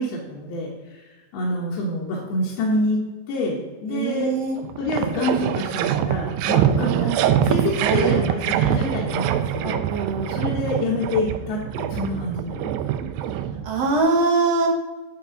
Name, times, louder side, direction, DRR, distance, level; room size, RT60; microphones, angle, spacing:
voice 1, 0.0-4.3 4.8-9.8 10.3-12.8, left 1 dB, 75° left, -4 dB, 3.2 m, -27 dB
voice 2, 3.9-4.6 6.7-7.2 7.8-8.2 9.6-10.5 13.2-14.7, right 4 dB, 65° right, 1 dB, 1.6 m, -24 dB
sound 1, 4.2-4.3 4.6-14.0, right 10 dB, 85° right, 2.0 m, -24 dB
10.0 x 7.0 x 4.0 m, 1.2 s
omnidirectional pair, 4.5 m